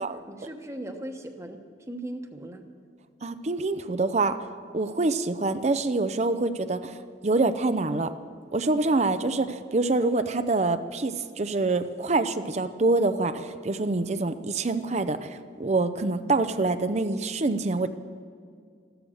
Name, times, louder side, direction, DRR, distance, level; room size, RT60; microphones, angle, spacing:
voice 1, 0.0-1.6 1.9-2.7, right 1 dB, 15° right, 5 dB, 1.1 m, -38 dB
voice 2, 3.2-4.4 4.7-8.1 8.5-17.9, right 3 dB, 40° right, 10 dB, 0.6 m, -26 dB
15.0 x 13.0 x 6.4 m, 2.2 s
head